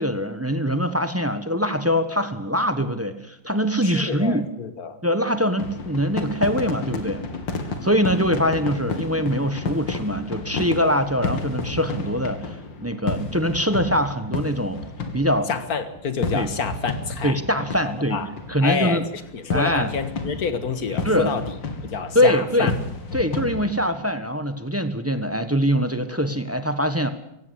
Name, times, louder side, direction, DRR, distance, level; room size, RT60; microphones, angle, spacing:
voice 1, 0.0-4.5 5.0-7.2 7.8-14.8 15.1-15.5 16.3-16.5 17.2-18.2 18.5-19.1 19.5-19.9 21.0-21.3 22.1-22.7 23.1-27.1, equal, 10° right, 10 dB, 1.0 m, -23 dB
voice 2, 3.8-5.0 15.5-17.4 17.8-18.3 18.6-19.0 19.3-21.4 21.8-22.7, left 6 dB, 50° left, 11 dB, 2.0 m, -28 dB
sound 1, 5.6-23.8, left 3 dB, 70° left, 2.7 m, -31 dB
17.0 x 16.0 x 9.8 m, 0.81 s
omnidirectional pair, 2.1 m